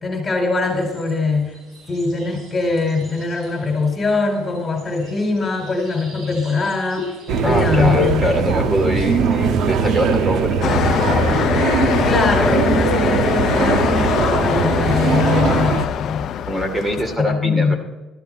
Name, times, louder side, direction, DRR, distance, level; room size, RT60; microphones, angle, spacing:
voice 1, 0.0-1.5 1.9-7.1 7.4-8.3 12.0-16.3 17.2-17.8, left 3 dB, 20° left, 2 dB, 4.5 m, -22 dB
sound 1, 0.6-8.1, left 3 dB, 40° right, 5.8 m, -33 dB
sound 2, 7.3-15.9, right 5 dB, 60° right, 1.2 m, -20 dB
voice 2, 7.4-10.8 11.0-11.5 12.4-12.6 16.5-17.7, equal, 15° right, 5 dB, 2.7 m, -23 dB
sound 3, 10.6-17.2, left 9 dB, 55° left, 0.5 m, -22 dB
13.5 x 13.0 x 4.2 m, 1.2 s
cardioid pair, 125°, 0 cm